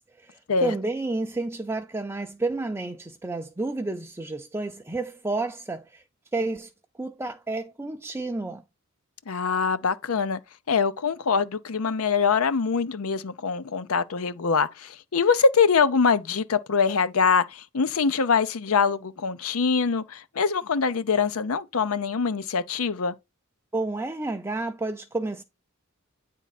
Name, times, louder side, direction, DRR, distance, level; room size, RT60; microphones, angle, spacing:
voice 1, 0.2-6.0 6.3-6.7 7.0-8.6 23.7-25.4, right 2 dB, 10° right, 0.5 m, -30 dB
voice 2, 9.3-10.4 10.7-23.1, left 5 dB, 75° left, 0.6 m, -24 dB
9.2 x 3.7 x 4.1 m
head